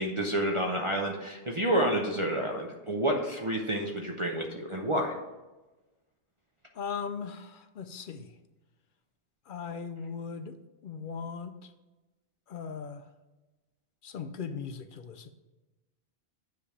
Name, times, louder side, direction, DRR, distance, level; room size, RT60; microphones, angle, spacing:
voice 1, 0.0-5.1, right 1 dB, 35° right, 0 dB, 0.6 m, -29 dB
voice 2, 6.7-8.3 9.5-10.6 10.8-11.7 12.5-13.1 14.0-15.3, left 6 dB, 60° left, 9 dB, 0.6 m, -38 dB
9.5 x 3.4 x 4.9 m, 1.1 s
omnidirectional pair, 1.2 m